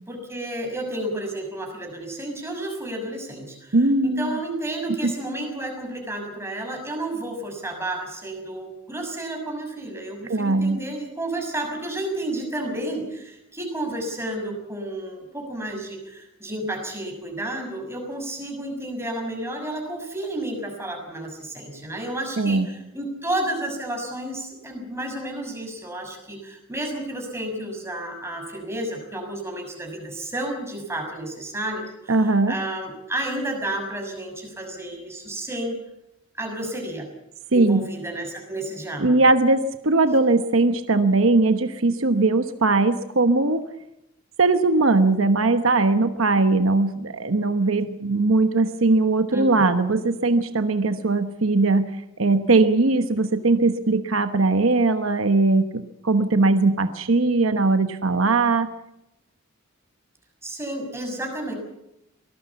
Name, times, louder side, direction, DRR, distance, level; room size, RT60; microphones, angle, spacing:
voice 1, 0.1-3.8 4.0-35.8 36.3-37.1 37.5-39.2 49.3-49.6 60.4-61.5, right 1 dB, 15° right, 3 dB, 6.3 m, -31 dB
voice 2, 3.7-4.4 5.0-5.1 10.3-10.8 22.4-22.7 32.1-32.5 37.5-37.8 39.0-43.6 44.4-51.9 52.2-58.7, right 3 dB, 70° right, 9 dB, 1.1 m, -20 dB
24.0 x 19.0 x 7.1 m, 0.87 s
head